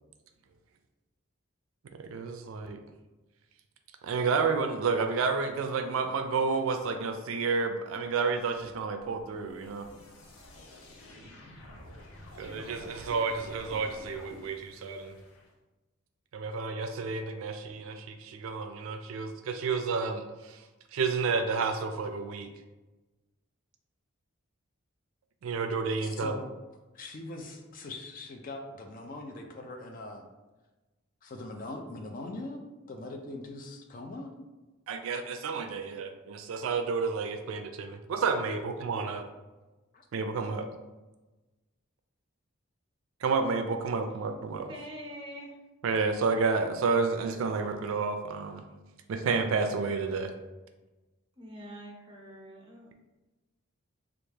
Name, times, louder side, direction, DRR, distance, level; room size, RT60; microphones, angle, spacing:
voice 1, 1.9-2.8 4.0-9.9 12.4-15.1 16.3-20.6 20.9-22.5 25.4-26.4 34.9-39.3 40.1-40.7 43.2-44.7 45.8-48.6 49.1-50.3, right 4 dB, 80° right, 7 dB, 0.4 m, -30 dB
sound 1, 8.5-15.5, left 1 dB, 80° left, 0.6 m, -49 dB
voice 2, 26.0-26.5 26.9-30.3 31.2-32.6 32.9-34.3 39.9-40.0, left 2 dB, 40° left, 3 dB, 0.4 m, -41 dB
voice 3, 44.7-45.6 51.4-52.9, equal, 25° right, -2 dB, 0.7 m, -44 dB
3.4 x 2.4 x 3.2 m, 1.1 s
head